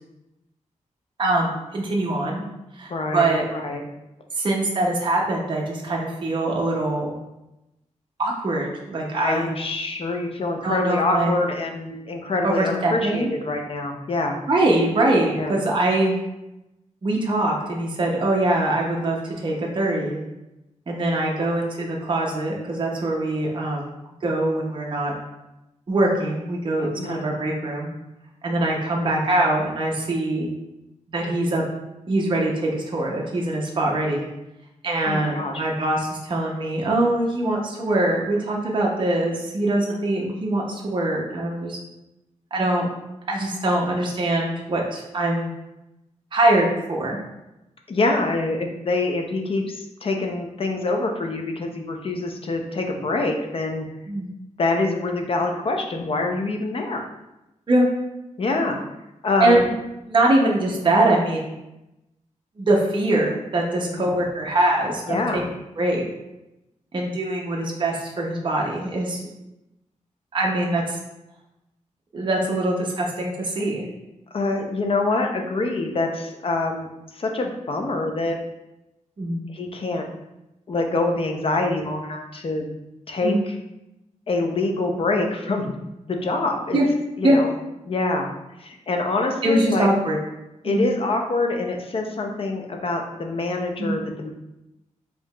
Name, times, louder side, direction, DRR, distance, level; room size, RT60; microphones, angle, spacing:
voice 1, 1.2-2.4 2.8-3.4 4.4-7.1 8.2-9.5 10.6-11.5 12.4-13.3 14.5-16.1 17.0-20.2 20.9-23.9 24.2-25.1 25.9-27.9 28.4-30.5 31.1-31.6 32.1-34.2 34.8-41.8 42.5-42.8 43.3-45.5 46.3-47.2 54.1-54.3 57.7-57.9 59.4-59.7 60.1-61.5 62.6-65.4 65.8-66.0 66.9-69.2 70.3-71.0 72.1-73.8 79.2-79.4 83.2-83.4 86.7-86.9 87.2-87.4 89.4-90.2 90.6-90.9 93.8-93.9, right 1 dB, 40° right, -2 dB, 0.6 m, -23 dB
voice 2, 2.9-3.8 9.1-14.4 15.4-15.5 26.8-27.2 35.1-35.6 47.9-53.9 54.6-57.1 58.4-58.8 59.2-59.6 63.8-64.1 65.1-65.4 74.3-78.4 79.5-80.0 80.7-82.7 83.1-83.5 84.3-85.8 86.1-86.8 87.2-87.5 87.9-88.3 88.6-89.9 90.6-94.3, left 2 dB, 45° left, 3 dB, 0.5 m, -25 dB
4.5 x 2.8 x 2.2 m, 0.94 s
wide cardioid pair, 120°, 13 cm